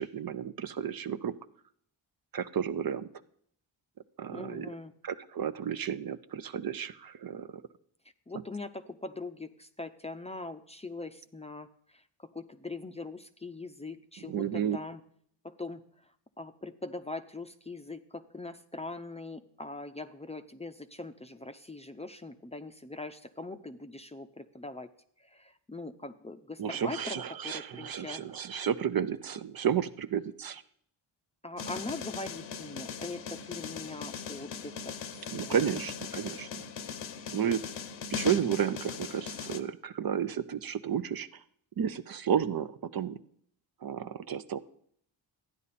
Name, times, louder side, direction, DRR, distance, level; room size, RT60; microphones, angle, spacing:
voice 1, 0.0-1.3 2.3-3.1 4.2-4.7 5.0-7.6 14.3-14.8 26.6-30.6 35.3-36.5 37.3-37.6 38.1-41.4 41.8-43.2 43.8-44.6, right 8 dB, 50° right, 12 dB, 0.7 m, -32 dB
voice 2, 4.3-4.9 8.3-11.7 12.3-15.0 15.4-15.8 16.4-24.9 25.3-28.2 31.4-35.0 35.3-35.7, left 2 dB, 15° left, 8 dB, 0.6 m, -41 dB
sound 1, 31.6-39.6, left 6 dB, 70° left, 0.9 m, -39 dB
12.5 x 9.7 x 4.2 m, 0.64 s
cardioid pair, 80°, 46 cm